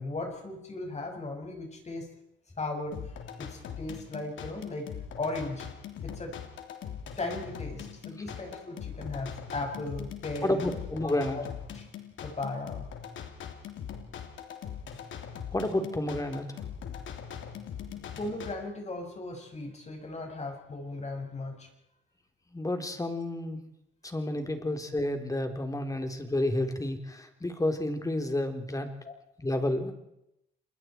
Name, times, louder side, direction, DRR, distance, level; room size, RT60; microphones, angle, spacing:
voice 1, 0.0-2.1 2.6-3.1 3.4-4.9 5.1-5.7 6.0-6.3 7.2-10.7 11.0-11.4 11.7-11.9 12.2-12.9 18.2-21.7 24.5-24.7 29.0-29.1, left 2 dB, 35° left, 3 dB, 6.3 m, -37 dB
sound 1, 2.9-18.5, left 8 dB, 75° left, 3.1 m, -41 dB
voice 2, 10.4-11.4 15.5-16.4 22.5-23.6 24.0-28.9 29.4-29.9, left 1 dB, 15° left, 6 dB, 3.8 m, -30 dB
28.5 x 21.5 x 4.6 m, 0.80 s
cardioid pair, 90°, 20 cm